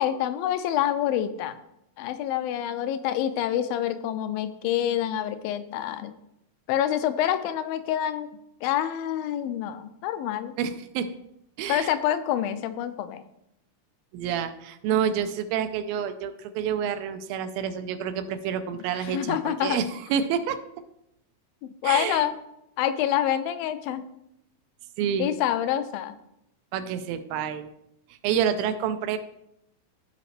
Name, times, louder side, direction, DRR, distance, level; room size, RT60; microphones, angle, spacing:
voice 1, 0.0-1.6 2.0-6.1 6.7-8.3 8.6-10.5 11.7-13.2 19.0-19.8 21.6-22.3 22.8-24.0 25.2-26.1, left 11 dB, 85° left, 11 dB, 2.4 m, -27 dB
voice 2, 10.6-11.2 11.6-11.9 14.1-20.6 21.8-22.3 25.0-25.3 26.7-27.7 28.2-29.2, right 8 dB, 85° right, 9 dB, 2.4 m, -28 dB
14.5 x 5.1 x 3.3 m, 0.79 s
omnidirectional pair, 4.2 m